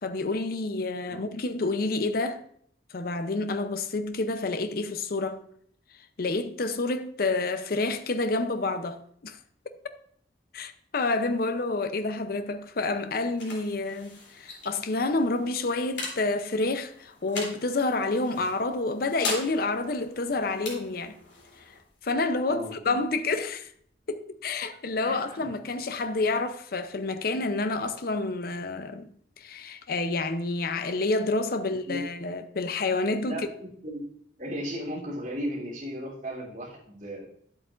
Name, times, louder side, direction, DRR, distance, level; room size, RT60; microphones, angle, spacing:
voice 1, 0.0-2.4 2.9-5.4 6.2-9.4 10.5-21.2 22.0-23.7 24.1-29.1 29.4-33.5, left 3 dB, 55° left, 0.6 m, -29 dB
sound 1, 12.6-24.0, left 3 dB, 80° left, 3.1 m, -41 dB
voice 2, 25.0-25.5 31.9-32.1 33.3-33.4 33.8-34.0 34.4-37.3, equal, 45° right, 3.2 m, -35 dB
10.5 x 8.1 x 2.5 m
head